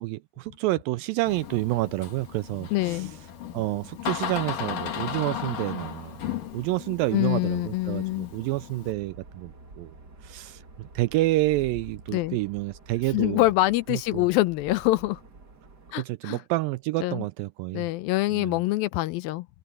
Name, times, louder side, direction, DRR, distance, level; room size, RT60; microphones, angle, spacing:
voice 1, 0.0-3.1 3.5-6.2 6.5-9.9 10.2-13.4 13.9-14.3 15.9-17.9 18.3-18.6, right 19 dB, 80° right, 2.1 m, -29 dB
Door, 1.3-8.9, left 9 dB, 60° left, 3.7 m, -36 dB
voice 2, 2.7-3.1 7.1-8.3 12.1-12.4 13.1-15.2 15.9-16.4 17.0-17.2 17.7-19.5, left 18 dB, 80° left, 2.3 m, -25 dB
sound 1, 8.8-16.0, right 3 dB, 30° right, 2.7 m, -48 dB
omnidirectional pair, 4.4 m